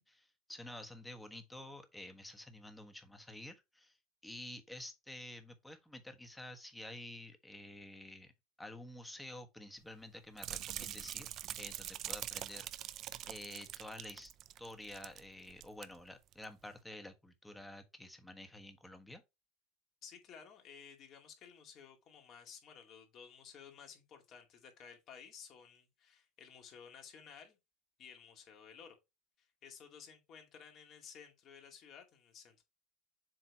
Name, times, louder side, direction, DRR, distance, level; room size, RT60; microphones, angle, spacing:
voice 1, 0.0-4.0 4.2-8.3 8.6-11.3 11.6-13.0 13.3-14.3 14.6-19.2, left 1 dB, 5° left, 1.3 m, -50 dB
sound 1, 10.4-15.2 15.5-15.8 16.3-16.4, right 12 dB, 50° right, 0.5 m, -44 dB
voice 2, 20.0-27.6 28.0-29.0 29.4-32.6, left 7 dB, 45° left, 2.2 m, -55 dB
7.5 x 3.3 x 4.2 m
supercardioid pair, 100°, 0 cm